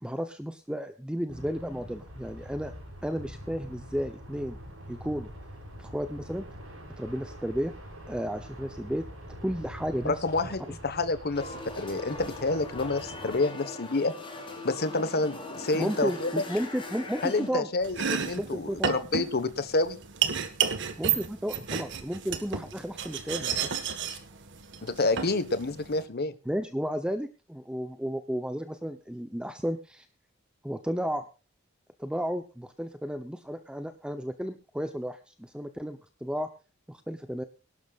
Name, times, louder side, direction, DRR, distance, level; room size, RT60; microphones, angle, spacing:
voice 1, 0.0-2.7 3.0-4.6 4.9-5.3 5.8-6.4 7.0-7.7 8.1-9.0 9.4-10.1 10.5-10.8 15.7-17.7 18.3-18.9 21.0-23.6 26.5-30.1 30.6-31.3 32.0-36.5 36.9-37.4, equal, 5° right, 8 dB, 0.8 m, -33 dB
sound 1, 1.3-13.4, equal, 75° right, 6.9 m, -45 dB
voice 2, 10.0-11.5 11.8-14.1 14.6-16.3 17.2-20.0 24.8-26.3, left 3 dB, 50° left, 12 dB, 1.3 m, -28 dB
sound 2, 11.3-17.5, left 2 dB, 25° left, 6.4 m, -41 dB
Domestic sounds home sounds, 17.8-26.0, right 7 dB, 60° right, 1.6 m, -32 dB
23.0 x 12.0 x 2.5 m, 0.33 s
head